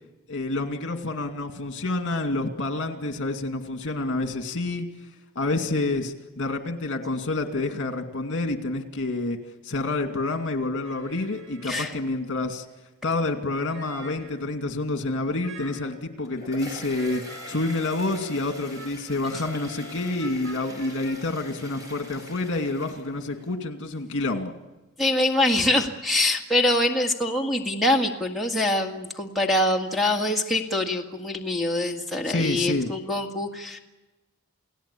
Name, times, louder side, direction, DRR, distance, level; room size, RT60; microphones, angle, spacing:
voice 1, 0.3-4.9 5.4-9.4 9.6-12.7 13.0-24.5 32.3-32.9, left 2 dB, 60° left, 5 dB, 2.4 m, -28 dB
sound 1, 10.8-12.2 12.6-12.7 13.6-14.4 15.4-16.0 16.9-21.2, right 1 dB, 65° right, 6.2 m, -45 dB
sound 2, 16.2-23.5, left 1 dB, 15° right, 6.2 m, -44 dB
voice 2, 25.0-33.8, left 1 dB, ahead, 3 dB, 1.9 m, -24 dB
30.0 x 18.0 x 8.6 m, 1.1 s
head